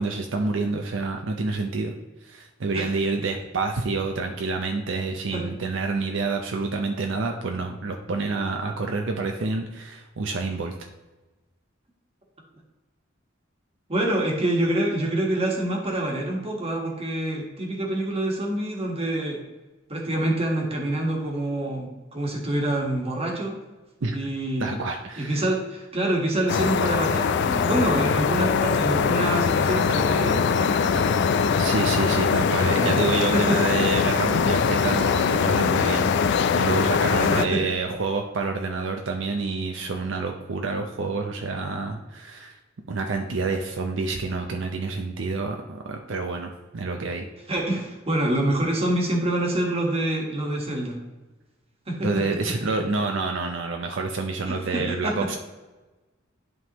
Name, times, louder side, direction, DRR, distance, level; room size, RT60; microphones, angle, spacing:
voice 1, 0.0-1.9 2.2-10.7 24.0-24.2 24.6-25.4 31.6-42.6 42.9-47.3 52.0-55.4, right 3 dB, 70° right, 3 dB, 0.6 m, -28 dB
voice 2, 13.9-19.4 19.9-23.6 24.1-24.7 25.2-31.1 31.5-31.7 32.6-33.0 33.3-33.6 37.2-37.6 47.5-51.0 51.9-52.2 54.4-55.3, right 1 dB, 30° right, 0 dB, 1.4 m, -26 dB
sound 1, 26.5-37.5, left 6 dB, 60° left, 0.3 m, -22 dB
11.0 x 3.7 x 3.0 m, 1.2 s
head